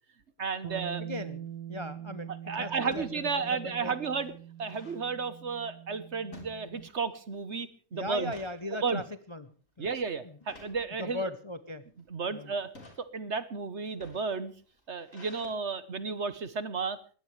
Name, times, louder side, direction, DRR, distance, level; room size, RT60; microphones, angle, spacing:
voice 1, 0.4-1.0 2.5-4.3 4.6-8.3 8.8-9.0 9.8-11.2 12.1-12.7 13.0-14.5 14.9-17.0, right 5 dB, 45° right, 14 dB, 1.3 m, -33 dB
Bass guitar, 0.6-6.9, right 11 dB, 85° right, 1.8 m, -44 dB
voice 2, 1.0-3.9 7.9-9.5 9.8-9.9 10.2-10.4 11.0-11.9 12.3-12.5, left 1 dB, 25° left, 12 dB, 0.6 m, -38 dB
sound 1, 1.1-1.4 2.8-3.1 3.6-3.7 4.0-5.0 6.3-7.1 7.5-7.7 8.1-8.6 9.2-9.5 10.4-10.8 11.6-12.0 12.6-13.0 13.8-15.5, left 2 dB, 50° left, 4.5 m, -53 dB
21.5 x 17.0 x 3.3 m, 0.40 s
omnidirectional pair, 1.8 m